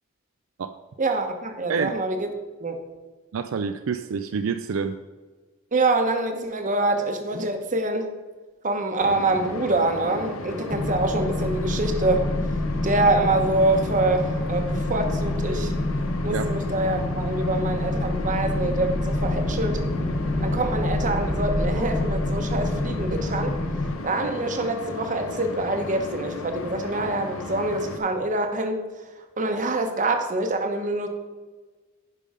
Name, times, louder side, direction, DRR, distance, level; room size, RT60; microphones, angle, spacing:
voice 1, 1.0-2.3 2.6-2.8 5.7-8.1 8.6-12.3 12.8-15.7 16.2-19.8 20.4-23.6 24.0-28.8 29.4-31.1, right 2 dB, 40° right, 6 dB, 1.0 m, -25 dB
voice 2, 3.3-5.0 16.3-16.5, right 6 dB, 70° right, 9 dB, 0.4 m, -27 dB
sound 1, 9.0-28.0, left 3 dB, 80° left, 0.8 m, -36 dB
sound 2, 10.7-23.9, left 2 dB, 20° left, 0.6 m, -27 dB
sound 3, 16.1-23.6, equal, 10° right, 1.0 m, -35 dB
11.0 x 5.4 x 5.0 m, 1.3 s
head